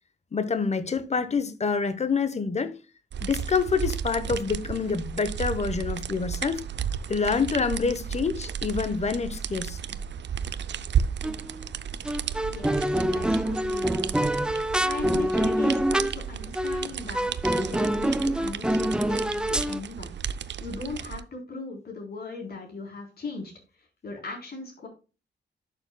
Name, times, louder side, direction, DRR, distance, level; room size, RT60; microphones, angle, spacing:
voice 1, 0.3-2.7 3.2-6.7 7.1-10.0, left 5 dB, 35° left, 1.0 m, -27 dB
sound 1, 3.1-21.2, right 8 dB, 75° right, 0.5 m, -33 dB
sound 2, 11.2-11.6 12.0-16.2 16.5-16.9 17.1-19.8, right 1 dB, 5° right, 0.4 m, -26 dB
voice 2, 12.5-12.8 13.1-13.9 14.8-20.1 20.6-23.5 24.0-24.9, left 3 dB, 55° left, 3.8 m, -38 dB
11.5 x 6.8 x 2.2 m
wide cardioid pair, 130°, 19 cm